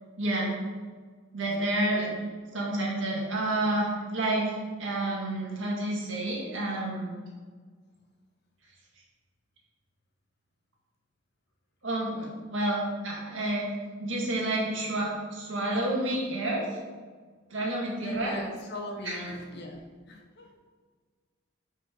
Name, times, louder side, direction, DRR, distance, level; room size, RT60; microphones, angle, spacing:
voice 1, 0.2-0.5 1.3-2.1 2.5-7.2 11.8-12.2 12.5-13.7 14.0-16.7 17.5-18.3 19.0-19.3, right 1 dB, 75° right, -3 dB, 1.9 m, -29 dB
voice 2, 1.9-2.2 12.0-12.3 18.0-20.6, left 1 dB, 55° left, 0 dB, 1.1 m, -39 dB
5.5 x 5.2 x 5.2 m, 1.5 s
head